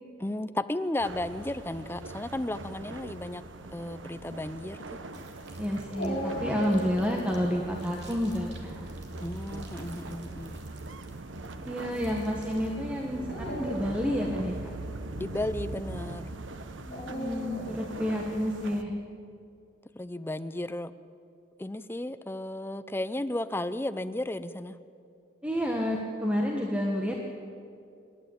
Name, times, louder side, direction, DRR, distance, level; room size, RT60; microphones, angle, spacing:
voice 1, 0.2-3.4 3.7-5.0 9.2-10.6 15.2-16.3 19.9-20.9 21.6-24.8, left 1 dB, 10° left, 13 dB, 0.5 m, -34 dB
sound 1, 1.0-18.8, right 2 dB, 85° right, 1.0 m, -41 dB
sound 2, 5.1-12.8, right 2 dB, 65° right, 2.9 m, -53 dB
voice 2, 5.6-8.9 11.6-14.6 16.9-18.9 25.4-27.2, equal, 5° right, 0 dB, 1.4 m, -30 dB
Dog, 5.9-7.6 9.7-10.1 10.9-11.0 13.2-14.4 16.9-17.9, equal, 55° left, 7.2 m, -37 dB
28.0 x 11.5 x 8.5 m, 2.5 s
head